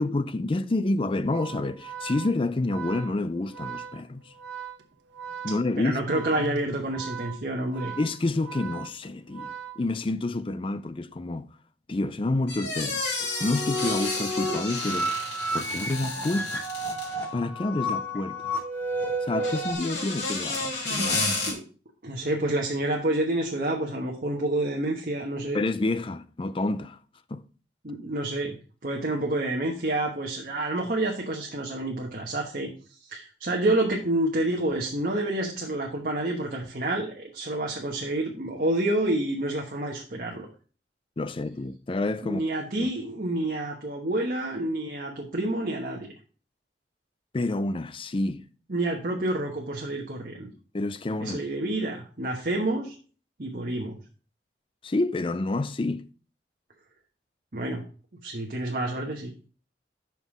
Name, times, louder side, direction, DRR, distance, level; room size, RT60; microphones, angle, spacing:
voice 1, 0.0-4.3 5.4-6.6 8.0-11.5 11.9-13.1 13.4-15.1 15.5-16.6 17.3-18.4 19.2-21.3 25.5-27.0 27.3-27.4 41.2-42.4 42.8-42.9 47.3-48.4 50.7-51.4 54.8-56.0, left 2 dB, 30° left, 0.4 m, -28 dB
Organ, 1.2-10.3, right 8 dB, 90° right, 1.0 m, -41 dB
voice 2, 5.8-7.9 21.5-21.6 22.0-25.6 27.8-28.5 28.8-32.7 33.0-40.5 42.2-46.1 48.7-50.5 51.2-52.9 53.4-54.0 57.5-57.8 58.2-59.3, right 1 dB, 50° right, 1.2 m, -28 dB
sound 1, 12.5-17.3 19.3-21.5, left 3 dB, 80° left, 2.9 m, -31 dB
sound 2, 13.2-19.7, equal, 10° left, 2.3 m, -31 dB
5.9 x 5.5 x 6.0 m
head